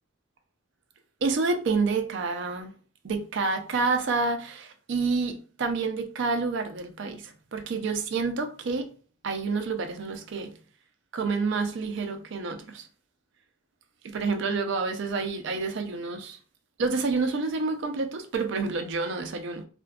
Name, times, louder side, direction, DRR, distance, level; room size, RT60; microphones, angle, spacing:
voice 1, 1.2-2.7 3.0-8.9 9.2-10.5 11.1-12.9 14.0-16.4 16.8-19.7, right 4 dB, 55° right, 0.4 m, -28 dB
2.5 x 2.1 x 2.3 m
head